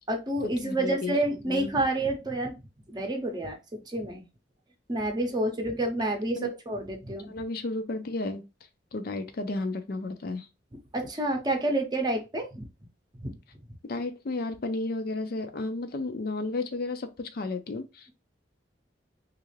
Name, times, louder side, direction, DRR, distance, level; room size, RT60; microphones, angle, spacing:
voice 1, 0.1-2.6 2.9-4.2 4.9-7.3 10.9-12.7 13.2-13.4, right 1 dB, 25° right, 0.7 m, -29 dB
voice 2, 0.6-1.1 1.5-1.7 6.4-6.5 7.3-8.4 8.9-10.5 13.8-18.1, left 2 dB, 55° left, 0.5 m, -33 dB
3.2 x 2.4 x 3.1 m
head